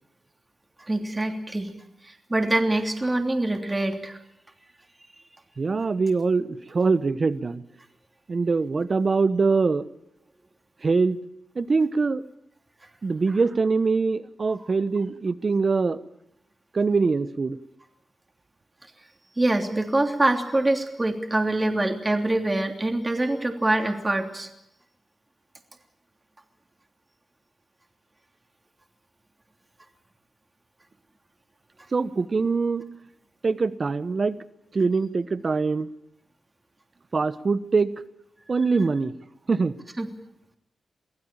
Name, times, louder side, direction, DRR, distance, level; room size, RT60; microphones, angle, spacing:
voice 1, 0.9-1.7 2.0-4.2 14.5-14.6 19.4-24.5 40.0-40.1, right 2 dB, 25° right, 3 dB, 3.1 m, -24 dB
voice 2, 5.6-7.6 8.3-9.8 10.8-11.2 11.5-12.2 13.0-16.0 16.7-17.6 31.9-32.8 33.4-34.4 34.7-35.9 37.1-37.9 38.5-39.1 39.5-39.7, right 4 dB, 50° right, 13 dB, 1.2 m, -23 dB
24.0 x 16.0 x 9.0 m, 0.82 s
cardioid pair, 55°, 0 cm